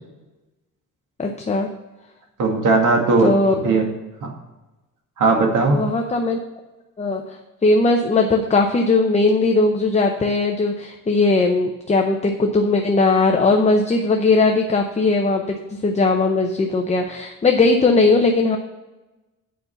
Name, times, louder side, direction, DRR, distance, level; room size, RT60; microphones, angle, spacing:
voice 1, 1.2-1.7 3.2-3.6 5.7-6.4 7.0-18.6, left 3 dB, 20° left, 3 dB, 0.6 m, -19 dB
voice 2, 2.4-3.9 4.2-4.3 5.2-5.8, right 3 dB, 65° right, 2 dB, 2.1 m, -18 dB
8.7 x 5.4 x 6.8 m, 1.1 s
cardioid pair, 150°, 34 cm